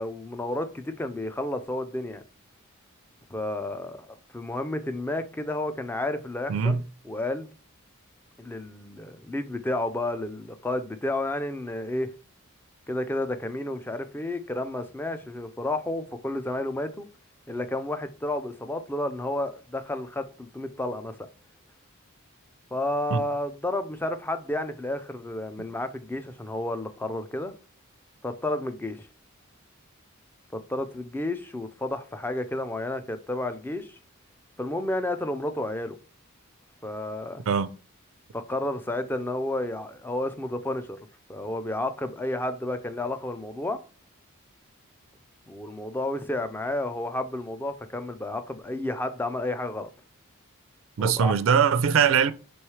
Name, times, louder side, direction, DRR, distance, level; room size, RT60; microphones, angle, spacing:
voice 1, 0.0-2.2 3.3-7.5 8.4-12.1 12.9-17.1 17.5-21.2 22.7-27.5 28.2-29.1 30.5-34.0 34.6-36.0 36.8-37.4 38.3-41.0 41.3-43.8 45.5-49.9 51.0-51.3, left 1 dB, 10° left, 0.3 m, -31 dB
voice 2, 6.5-6.8 23.1-23.2 37.5-37.7 51.0-52.3, right 6 dB, 65° right, 0.4 m, -21 dB
3.1 x 3.1 x 4.7 m
head